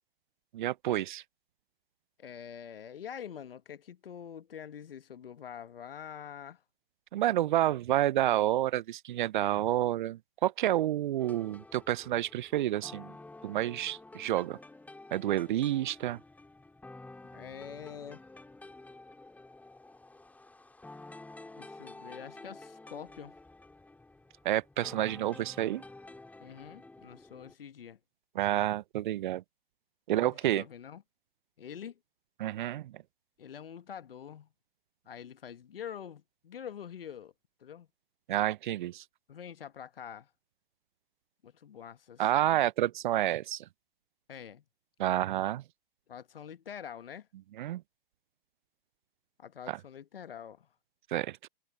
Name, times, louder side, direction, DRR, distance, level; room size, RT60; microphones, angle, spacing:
voice 1, 0.5-1.2 7.1-13.1 13.4-14.6 15.1-16.2 24.4-25.8 28.4-29.4 30.1-30.6 32.4-32.9 38.3-39.0 42.2-43.6 45.0-45.6 47.6-47.8 49.7-49.8 51.1-51.4, right 13 dB, 55° right, 0.7 m, -29 dB
voice 2, 2.2-6.6 17.3-18.2 21.6-23.3 26.4-28.0 30.1-31.0 31.6-32.0 33.4-34.5 35.0-37.3 37.6-37.9 39.3-40.3 41.4-42.6 44.3-44.6 46.1-47.3 49.4-50.7, left 8 dB, 70° left, 1.5 m, -45 dB
sound 1, 11.2-27.5, left 2 dB, 5° left, 3.1 m, -51 dB
figure-of-eight pair, 110°, 30 cm